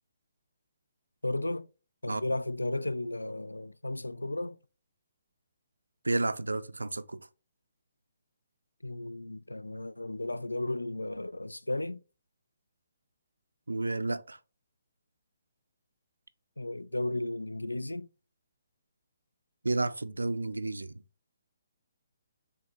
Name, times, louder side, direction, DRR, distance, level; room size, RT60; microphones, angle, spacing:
voice 1, 1.2-1.7 2.0-4.6 8.8-12.0 16.6-18.1, left 2 dB, 90° left, 0.3 m, -34 dB
voice 2, 6.0-7.3 13.7-14.4 19.6-21.0, right 2 dB, 80° right, 0.4 m, -31 dB
4.8 x 3.4 x 2.9 m
figure-of-eight pair, 135°, 0 cm